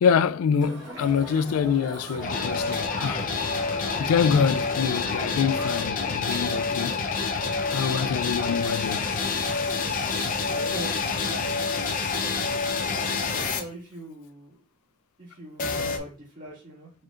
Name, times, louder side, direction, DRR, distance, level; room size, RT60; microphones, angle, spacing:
voice 1, 0.0-3.3 4.0-7.0 7.7-9.1, left 6 dB, 85° left, 0.3 m, -25 dB
Crowd, 0.6-5.9, right 1 dB, 55° right, 1.8 m, -39 dB
sound 1, 1.2-11.1, right 3 dB, 75° right, 1.6 m, -50 dB
sound 2, 2.2-13.6 15.6-16.0, left 4 dB, 40° left, 0.6 m, -27 dB
voice 2, 10.5-11.0 11.4-12.5 13.3-14.5 15.2-17.0, right 1 dB, 40° right, 1.8 m, -42 dB
4.9 x 4.4 x 2.4 m
head